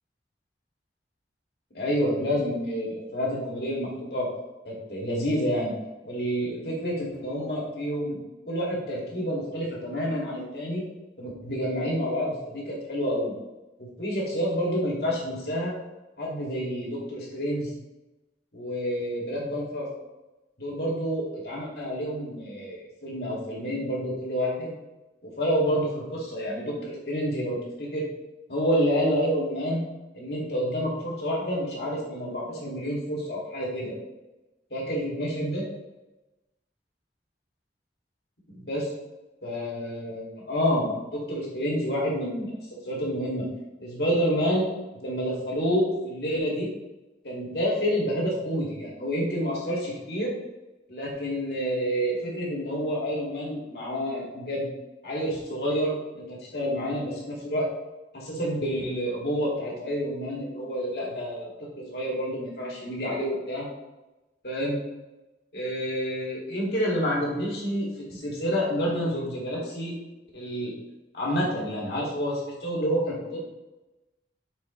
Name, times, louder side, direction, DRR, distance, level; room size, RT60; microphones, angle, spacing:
voice 1, 1.7-4.3 4.7-5.7 6.0-10.8 11.2-13.3 13.8-15.7 16.2-17.7 18.5-19.9 20.6-24.7 25.2-28.0 28.5-29.8 30.1-33.9 34.7-35.6 38.5-38.9 39.4-42.6 42.8-43.5 43.8-44.7 45.0-46.7 47.2-50.3 50.9-54.7 55.0-57.7 58.1-63.7 64.4-64.8 65.5-69.9 70.3-70.7 71.1-73.4, equal, 65° left, -4 dB, 2.2 m, -28 dB
7.6 x 4.5 x 3.1 m, 1.0 s
head